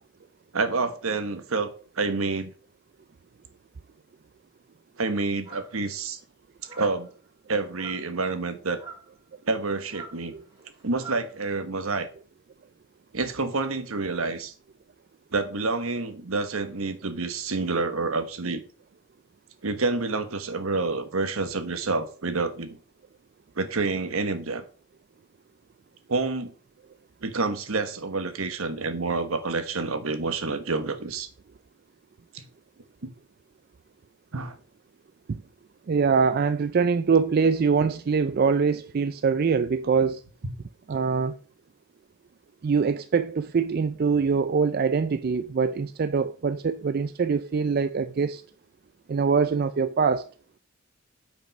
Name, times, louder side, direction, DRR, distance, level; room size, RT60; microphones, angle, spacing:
voice 1, 0.5-2.5 5.0-6.2 6.8-7.1 7.5-8.8 9.5-10.3 10.8-12.1 13.1-14.5 15.3-18.6 19.6-22.8 23.6-24.6 26.1-26.5 27.2-31.3 32.3-32.4 33.0-33.1 34.3-34.5, right 3 dB, 75° right, 1.2 m, -28 dB
sound 1, 5.5-5.9 6.6-7.1 7.7-8.1 8.7-9.1 9.8-11.3, right 4 dB, 20° right, 3.7 m, -44 dB
voice 2, 35.9-40.2 40.9-41.4 42.6-48.4 49.1-50.2, right 5 dB, 45° right, 0.3 m, -23 dB
9.1 x 5.3 x 5.3 m
head